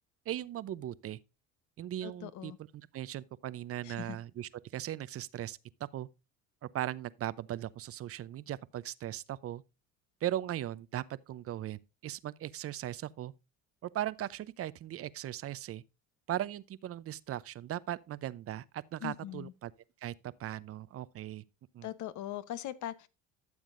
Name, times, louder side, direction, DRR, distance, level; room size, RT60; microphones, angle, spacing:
voice 1, 0.3-1.2 1.8-5.6 5.9-6.1 6.6-9.6 10.2-13.3 13.8-15.8 16.3-19.7 20.0-21.4 21.7-21.9, right 12 dB, 45° right, 0.6 m, -38 dB
voice 2, 2.0-2.6 3.8-4.2 19.0-19.5 21.8-23.1, left 12 dB, 60° left, 1.0 m, -40 dB
13.0 x 7.2 x 2.5 m
supercardioid pair, 80°, 34 cm